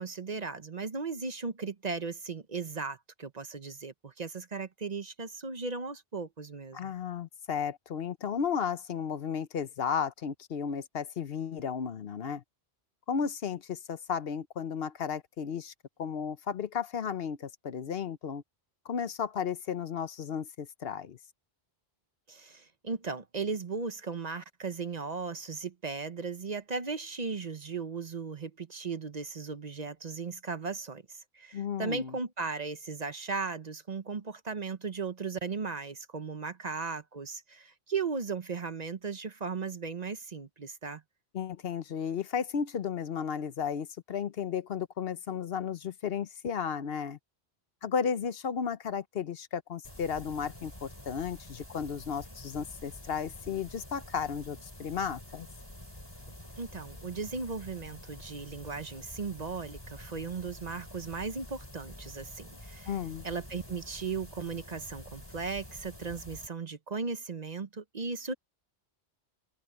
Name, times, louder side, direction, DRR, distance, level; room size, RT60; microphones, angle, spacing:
voice 1, 0.0-6.9 22.3-41.0 56.6-62.9 63.2-68.3, right 4 dB, 40° right, 0.9 m, -37 dB
voice 2, 6.7-12.4 13.1-15.7 16.0-18.4 18.8-21.2 31.5-32.2 41.3-47.2 47.8-55.5 62.9-63.2, left 7 dB, 65° left, 1.0 m, -34 dB
sound 1, 49.8-66.5, left 1 dB, 20° left, 4.3 m, -48 dB
omnidirectional pair, 1.1 m